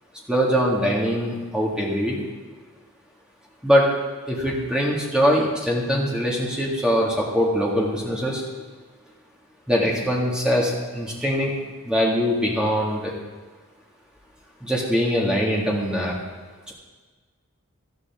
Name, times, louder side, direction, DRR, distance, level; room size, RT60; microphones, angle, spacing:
voice 1, 0.3-2.2 3.6-3.9 4.3-8.4 9.7-11.5 11.9-13.1 14.6-16.1 16.7-16.8, equal, 5° right, -4 dB, 2.0 m, -22 dB
13.0 x 12.0 x 3.7 m, 1.4 s
head